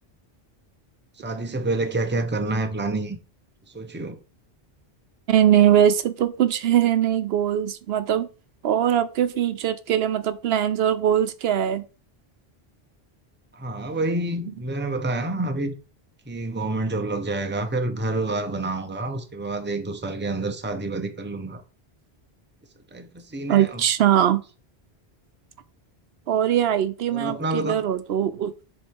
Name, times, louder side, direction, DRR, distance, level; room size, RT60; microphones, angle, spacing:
voice 1, 1.2-3.2 3.7-4.2 13.5-15.7 16.3-21.6 22.9-23.8 27.1-27.8, right 2 dB, 10° right, 0.7 m, -28 dB
voice 2, 5.3-8.3 8.6-11.8 23.5-24.4 26.3-28.5, right 10 dB, 80° right, 0.8 m, -21 dB
7.3 x 3.6 x 4.6 m
omnidirectional pair, 1.0 m